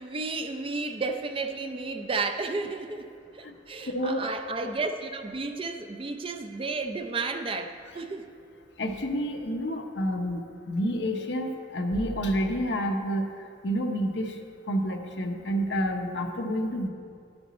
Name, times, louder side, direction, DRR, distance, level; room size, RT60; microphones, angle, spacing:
voice 1, 0.0-8.3, right 3 dB, 30° right, 7 dB, 0.4 m, -32 dB
voice 2, 3.9-4.2 8.8-13.2 13.6-14.3 14.7-16.9, equal, 70° left, 4 dB, 0.8 m, -29 dB
11.5 x 7.9 x 4.2 m, 2.4 s
head